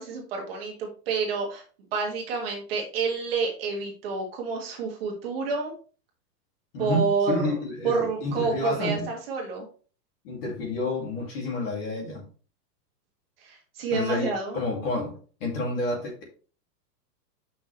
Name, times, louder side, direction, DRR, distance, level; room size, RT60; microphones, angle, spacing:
voice 1, 0.0-1.6 1.9-5.7 6.8-7.6 7.8-9.7 13.4-14.6, right 4 dB, 35° right, 0 dB, 1.7 m, -29 dB
voice 2, 6.7-9.1 10.2-12.2 13.9-16.2, left 2 dB, 35° left, 0 dB, 2.5 m, -29 dB
6.9 x 5.9 x 3.2 m, 0.38 s
supercardioid pair, 180°, 50 cm